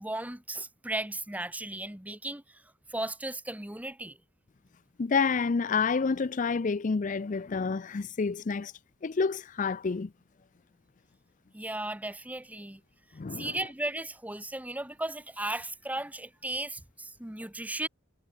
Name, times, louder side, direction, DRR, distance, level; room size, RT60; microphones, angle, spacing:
voice 1, 0.0-4.2 11.5-12.8 13.3-17.9, right 1 dB, 10° right, 1.5 m, -36 dB
voice 2, 5.0-8.7 9.0-10.1 13.1-13.5, left 5 dB, 40° left, 0.5 m, -28 dB
head